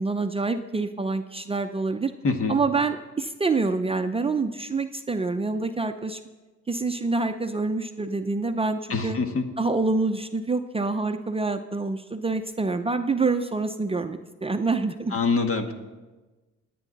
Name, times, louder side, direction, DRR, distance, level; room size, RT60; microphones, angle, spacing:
voice 1, 0.0-2.1 2.5-6.2 6.7-9.2 9.6-15.2, right 3 dB, 20° right, 7 dB, 0.6 m, -26 dB
voice 2, 2.2-2.6 8.9-9.4 15.1-15.7, left 4 dB, 45° left, 6 dB, 1.6 m, -25 dB
27.0 x 9.3 x 4.0 m, 1.2 s
cardioid pair, 90°, 30 cm